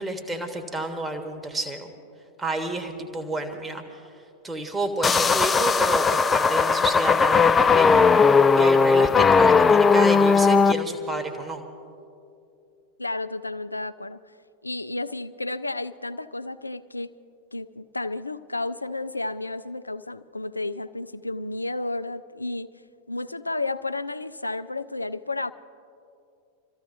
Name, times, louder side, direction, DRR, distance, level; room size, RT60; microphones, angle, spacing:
voice 1, 0.0-1.9 2.4-4.0 4.4-11.6, right 2 dB, 10° right, 4 dB, 1.3 m, -30 dB
sound 1, 5.0-10.7, left 5 dB, 15° left, 0.4 m, -18 dB
voice 2, 13.0-14.2 14.6-17.1 17.5-22.7 23.1-25.5, left 2 dB, 85° left, 13 dB, 0.4 m, -32 dB
28.0 x 14.5 x 2.7 m, 2.6 s
figure-of-eight pair, 90°, 0 cm